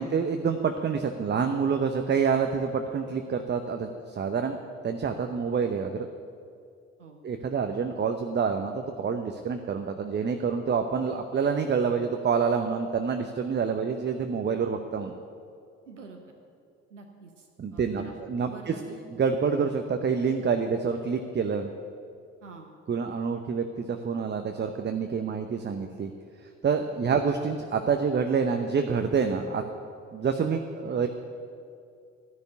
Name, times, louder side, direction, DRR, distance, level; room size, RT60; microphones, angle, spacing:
voice 1, 0.0-4.6 4.8-6.1 7.2-15.1 17.6-18.7 19.2-21.7 22.9-26.1 26.6-29.6 30.1-31.1, right 6 dB, 30° right, 6 dB, 0.9 m, -27 dB
voice 2, 15.9-16.4 16.9-18.1 18.4-19.0 22.4-22.7 27.0-27.2, right 4 dB, 90° right, 4 dB, 0.9 m, -47 dB
12.5 x 6.7 x 9.6 m, 2.3 s
figure-of-eight pair, 50°, 35 cm